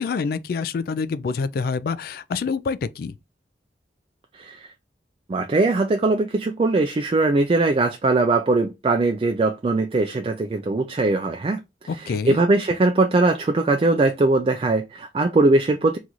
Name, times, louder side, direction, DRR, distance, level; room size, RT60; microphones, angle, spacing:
voice 1, 0.0-3.1 11.9-12.4, left 5 dB, 55° left, 0.3 m, -26 dB
voice 2, 4.3-4.7 5.3-11.6 12.0-16.0, right 2 dB, 30° right, 0.3 m, -20 dB
3.0 x 2.4 x 3.9 m
head